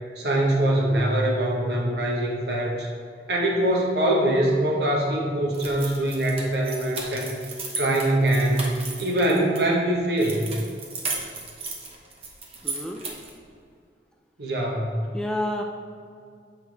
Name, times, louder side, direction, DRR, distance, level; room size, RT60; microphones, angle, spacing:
voice 1, 0.2-2.9 3.3-7.3 7.8-10.5 14.4-15.0, right 1 dB, 70° right, -1 dB, 1.3 m, -23 dB
sound 1, 5.5-9.6 10.2-13.4, right 3 dB, 35° right, 1.0 m, -35 dB
voice 2, 12.6-13.0 15.1-15.6, left 1 dB, 5° left, 1 dB, 0.4 m, -29 dB
8.0 x 5.7 x 3.4 m, 2.3 s
head